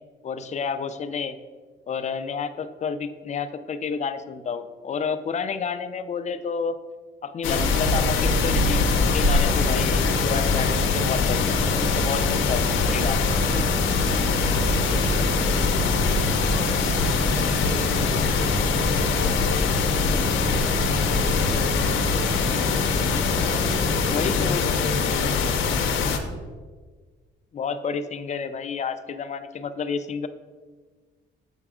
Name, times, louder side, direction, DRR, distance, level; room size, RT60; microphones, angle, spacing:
voice 1, 0.2-1.4 1.9-6.8 7.2-13.2 24.1-24.7 27.5-30.3, left 6 dB, 35° left, 10 dB, 0.4 m, -30 dB
sound 1, 7.4-26.2, left 5 dB, 80° left, 0.7 m, -24 dB
sound 2, 7.6-22.5, equal, 35° right, 0.7 m, -28 dB
sound 3, 8.3-24.3, right 1 dB, 5° left, 1.0 m, -33 dB
voice 2, 13.1-19.7 20.1-22.3 22.8-25.8, equal, 65° right, -1 dB, 1.8 m, -37 dB
6.8 x 4.6 x 3.6 m, 1.5 s
cardioid pair, 90°, 20 cm